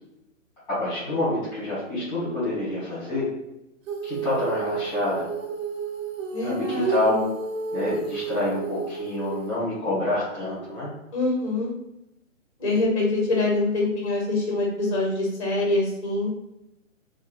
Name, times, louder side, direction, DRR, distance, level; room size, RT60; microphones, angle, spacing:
voice 1, 0.7-3.2 4.0-5.3 6.4-7.2 7.7-10.9, left 2 dB, 5° left, -12 dB, 0.9 m, -27 dB
Female singing, 3.9-9.6, right 5 dB, 75° right, 0.7 m, -31 dB
voice 2, 6.3-7.3 11.1-11.7 12.6-16.3, left 2 dB, 25° left, -2 dB, 0.4 m, -25 dB
3.0 x 2.3 x 2.3 m, 0.89 s
hypercardioid pair, 165°, 40 cm